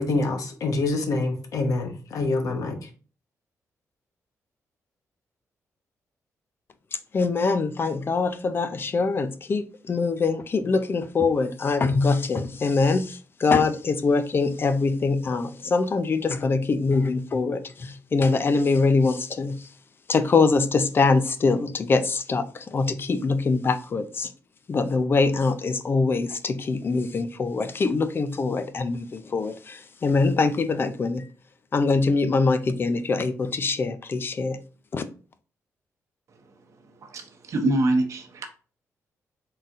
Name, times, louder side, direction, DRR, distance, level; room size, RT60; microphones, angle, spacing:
voice 1, 0.0-2.8, left 2 dB, 70° left, 0.9 m, -26 dB
voice 2, 7.1-19.7 20.1-24.3 24.7-31.3 31.7-34.6 34.9-35.0, left 4 dB, 40° left, 0.5 m, -23 dB
voice 3, 37.0-38.5, right 2 dB, 60° right, 0.9 m, -25 dB
4.0 x 3.9 x 2.4 m
cardioid pair, 110°, 6 cm